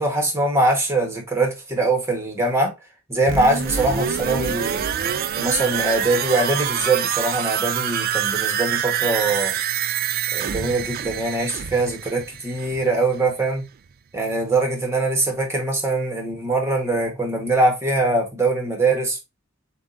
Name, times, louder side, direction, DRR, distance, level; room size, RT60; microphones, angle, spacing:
voice 1, 0.0-2.7 3.1-4.9 5.4-9.6 10.3-13.6 14.1-19.2, right 2 dB, 15° right, 1.2 m, -22 dB
sound 1, 3.3-13.0 13.3-13.4, right 9 dB, 45° right, 0.3 m, -26 dB
7.0 x 2.4 x 2.5 m
head